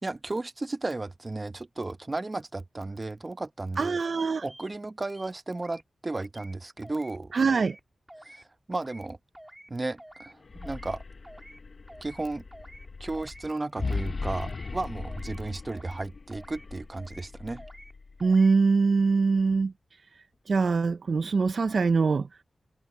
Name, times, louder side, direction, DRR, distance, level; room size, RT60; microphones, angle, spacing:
voice 1, 0.0-4.0 4.4-7.3 8.2-9.2 9.7-11.0 12.0-12.5 13.0-17.6, right 2 dB, 35° right, 1.2 m, -34 dB
voice 2, 3.8-4.4 7.3-7.8 18.2-19.7 20.5-22.3, right 4 dB, 65° right, 0.7 m, -23 dB
sound 1, 4.5-4.7 5.0-5.8 6.1-6.5 6.8-7.2 7.4-7.8 8.1-8.4 8.7-9.1 9.3-9.7 10.0-10.3 10.6-11.0 11.2-11.6 11.9-12.2 12.5-12.9 13.1-13.5 13.8-14.1 14.4-14.8 15.0-15.4 15.7-16.0 16.3-16.7 16.9-17.3 17.6-17.9 18.2-18.5, right 1 dB, 10° right, 3.7 m, -49 dB
sound 2, 10.3-18.5, left 4 dB, 60° left, 1.4 m, -38 dB
cardioid pair, 55°, 0 cm